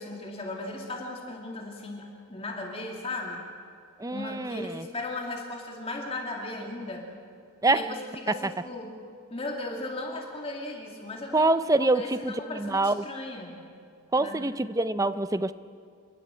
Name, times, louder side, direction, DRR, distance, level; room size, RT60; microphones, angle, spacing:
voice 1, 0.0-3.4 4.1-7.1 7.7-7.9 8.2-8.9 9.3-11.5 11.9-13.6 14.2-14.4, left 2 dB, 25° left, 0 dB, 2.4 m, -36 dB
voice 2, 4.0-4.9 7.6-7.9 8.3-8.4 11.3-13.1 14.1-15.5, right 2 dB, 15° right, 13 dB, 0.5 m, -25 dB
29.5 x 11.5 x 8.9 m, 2.3 s
head